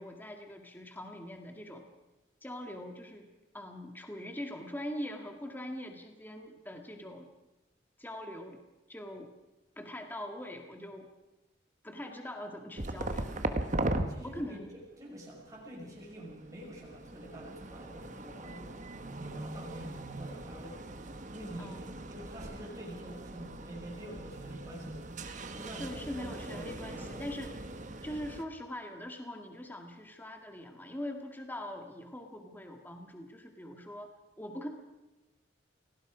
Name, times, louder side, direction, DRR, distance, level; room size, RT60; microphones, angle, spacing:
voice 1, 0.0-1.8 2.4-3.3 3.5-7.3 8.0-8.6 8.9-9.3 9.8-11.1 11.8-13.7 14.2-14.7 21.6-22.1 25.8-27.6 28.0-34.1 34.4-34.7, left 1 dB, 10° left, 3 dB, 1.9 m, -42 dB
sound 1, 12.8-14.1 15.7-28.4, right 2 dB, 40° right, 1.3 m, -39 dB
voice 2, 13.8-14.6 15.0-18.8 19.1-20.8 21.3-21.8 22.1-25.0 25.5-27.3, equal, 20° right, -4 dB, 5.7 m, -47 dB
28.0 x 18.5 x 5.0 m, 1.1 s
head